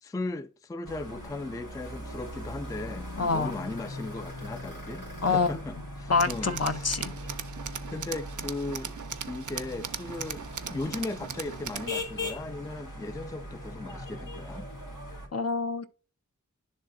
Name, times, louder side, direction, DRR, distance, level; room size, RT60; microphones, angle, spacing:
voice 1, 0.0-6.9 7.9-9.0 9.3-14.7, left 2 dB, 10° left, 0.3 m, -37 dB
sound 1, 0.8-15.3, left 1 dB, 80° left, 1.9 m, -40 dB
voice 2, 3.2-3.5 5.2-5.6 6.1-7.1 15.3-15.9, left 4 dB, 55° left, 0.7 m, -26 dB
Tools, 6.2-12.0, right 7 dB, 70° right, 0.5 m, -39 dB
10.5 x 3.7 x 2.5 m
wide cardioid pair, 45°, 31 cm